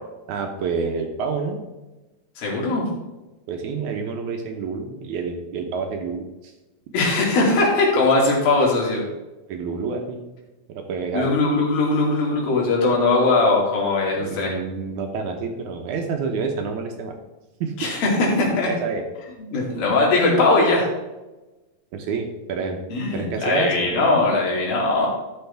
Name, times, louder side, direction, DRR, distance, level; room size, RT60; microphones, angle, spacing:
voice 1, 0.3-1.6 3.5-6.5 9.5-10.3 10.8-11.3 14.2-17.2 17.6-17.7 18.7-19.0 21.9-22.8 23.1-23.9, right 5 dB, 70° right, 4 dB, 2.1 m, -28 dB
voice 2, 2.4-2.9 6.9-9.1 11.1-14.5 17.8-18.7 19.5-20.9 22.9-25.1, left 2 dB, 90° left, -3 dB, 4.3 m, -20 dB
13.5 x 6.3 x 3.5 m, 1.1 s
omnidirectional pair, 4.1 m